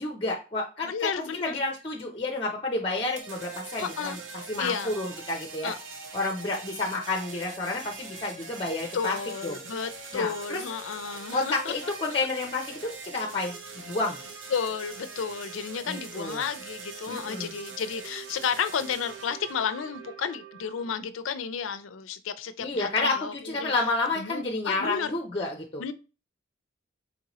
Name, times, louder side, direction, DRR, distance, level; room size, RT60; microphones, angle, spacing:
voice 1, 0.0-1.1 1.4-5.7 6.1-9.2 9.4-9.6 10.1-10.6 11.3-14.2 15.9-16.4 17.1-17.5 22.6-25.8, left 3 dB, 25° left, 2 dB, 0.5 m, -30 dB
voice 2, 0.8-1.6 3.8-4.2 4.6-4.9 5.6-5.8 8.9-11.7 14.5-23.7 24.2-25.2 25.8-25.9, left 6 dB, 90° left, 12 dB, 0.4 m, -32 dB
sound 1, 3.0-21.0, right 5 dB, 80° right, 0.7 m, -42 dB
4.2 x 2.8 x 2.9 m, 0.31 s
head